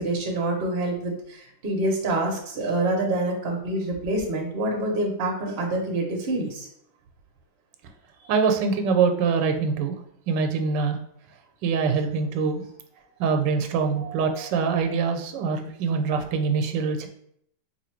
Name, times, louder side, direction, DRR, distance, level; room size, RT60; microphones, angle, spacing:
voice 1, 0.0-6.7 13.9-14.2 14.7-14.8, right 2 dB, 50° right, 0 dB, 0.8 m, -27 dB
voice 2, 8.3-10.0 10.3-11.0 11.6-12.6 13.2-17.1, right 5 dB, 90° right, 6 dB, 1.2 m, -24 dB
2.8 x 2.8 x 4.3 m, 0.70 s
omnidirectional pair, 1.9 m